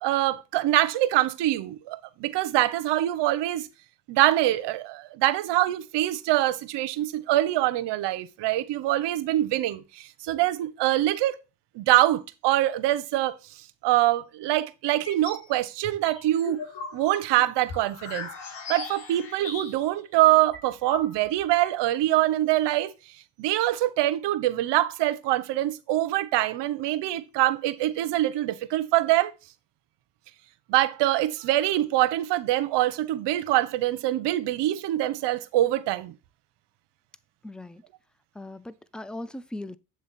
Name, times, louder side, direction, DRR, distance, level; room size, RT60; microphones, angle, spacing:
voice 1, 0.0-3.7 4.1-11.4 11.7-13.4 13.8-16.6 16.9-18.3 18.7-22.9 23.4-29.3 30.7-36.1, right 15 dB, 80° right, 0.7 m, -24 dB
sound 1, 14.9-15.4 15.8-20.0 20.3-20.4 20.5-21.5, left 4 dB, 80° left, 1.5 m, -38 dB
voice 2, 37.4-37.8 38.3-39.8, left 1 dB, ahead, 0.3 m, -38 dB
7.5 x 3.5 x 4.0 m
supercardioid pair, 60°, 41 cm